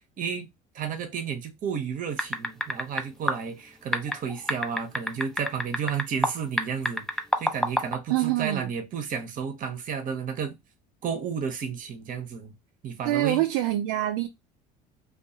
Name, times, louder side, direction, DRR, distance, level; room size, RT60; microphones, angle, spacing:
voice 1, 0.2-0.5 0.7-10.6 11.0-12.5 12.8-13.4, right 7 dB, 45° right, 0.8 m, -32 dB
sound 1, 2.2-3.0 3.3-3.4 3.9-6.3 6.6-7.9, left 1 dB, ahead, 0.4 m, -26 dB
voice 2, 8.1-8.7 13.0-14.3, right 14 dB, 75° right, 0.4 m, -25 dB
2.4 x 2.3 x 2.7 m
supercardioid pair, 90°, 20 cm